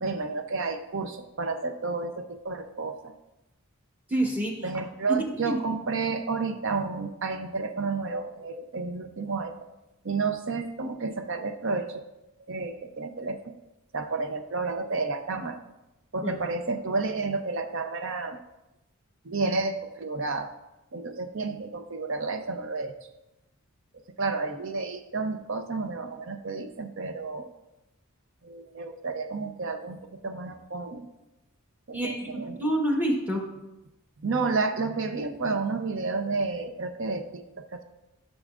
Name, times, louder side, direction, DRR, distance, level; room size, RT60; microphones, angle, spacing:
voice 1, 0.0-3.1 4.6-9.5 10.0-12.0 12.5-13.5 13.9-15.6 16.1-18.4 19.2-20.5 20.9-23.0 24.2-27.5 28.4-30.0 30.2-31.1 31.9-32.7 34.2-37.8, right 4 dB, 60° right, 7 dB, 0.6 m, -31 dB
voice 2, 4.1-4.6 5.1-5.2 5.4-5.6 16.2-16.3 31.9-33.4, right 1 dB, 5° right, 0 dB, 1.2 m, -27 dB
13.0 x 6.3 x 2.5 m, 0.97 s
head